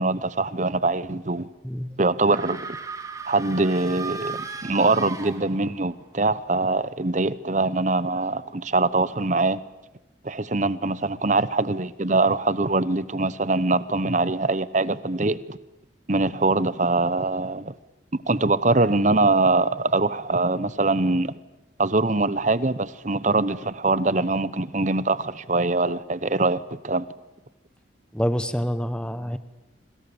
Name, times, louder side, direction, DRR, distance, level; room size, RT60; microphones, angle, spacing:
voice 1, 0.0-1.5 2.0-2.8 3.3-9.6 10.2-15.6 16.1-17.7 18.1-21.3 21.8-27.1, right 3 dB, 40° right, 1.0 m, -23 dB
voice 2, 1.6-2.0 28.1-29.4, equal, 5° left, 1.1 m, -27 dB
sound 1, 2.2-5.9, right 4 dB, 15° right, 1.8 m, -36 dB
27.0 x 26.0 x 7.1 m
head